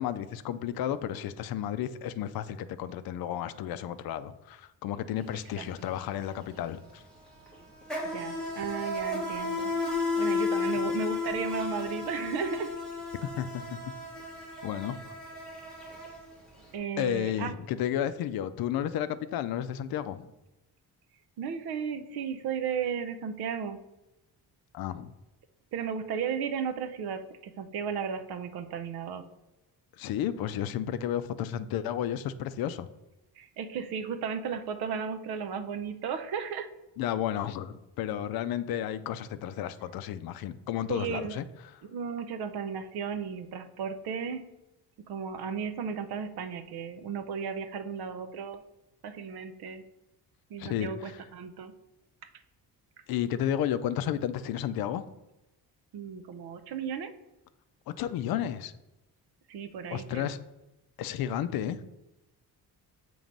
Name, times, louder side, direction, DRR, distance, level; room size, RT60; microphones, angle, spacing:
voice 1, 0.0-7.0 13.4-13.8 14.6-15.0 17.0-20.3 24.7-25.1 30.0-32.9 37.0-41.4 50.6-51.2 53.1-55.0 58.0-58.7 59.9-60.4 61.0-61.8, left 10 dB, 65° left, 12 dB, 0.5 m, -32 dB
Insect, 5.2-5.4 5.6-16.6, left 3 dB, ahead, 1.4 m, -33 dB
voice 2, 8.1-9.7 10.2-12.7 16.7-17.6 21.4-23.8 25.7-29.2 33.4-36.7 40.9-41.4 41.8-44.4 45.1-48.6 49.0-49.8 50.5-51.7 55.9-57.1 59.5-60.3, right 6 dB, 75° right, 8 dB, 0.7 m, -34 dB
7.3 x 3.1 x 5.2 m, 0.98 s
cardioid pair, 180°, 39 cm